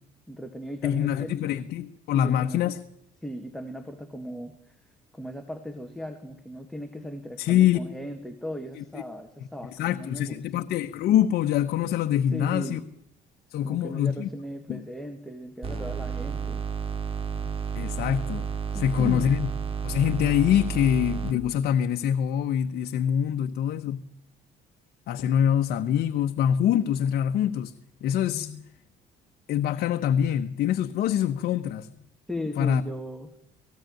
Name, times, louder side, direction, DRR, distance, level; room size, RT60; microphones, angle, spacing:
voice 1, 0.3-1.8 2.1-2.6 3.2-4.8 5.1-10.7 12.3-12.9 13.6-16.6 18.7-19.4 32.3-33.4, equal, ahead, 2.0 m, -37 dB
voice 2, 0.8-2.8 7.4-7.8 8.8-8.9 9.7-12.8 13.5-14.3 14.7-14.8 17.4-17.5 17.7-18.5 18.7-19.5 19.8-24.0 25.1-27.7 28.0-28.6 29.5-31.9 32.6-32.8, left 10 dB, 70° left, 1.0 m, -24 dB
sound 1, 15.6-21.4, right 6 dB, 35° right, 3.0 m, -31 dB
18.5 x 17.0 x 9.1 m
cardioid pair, 110°, 17 cm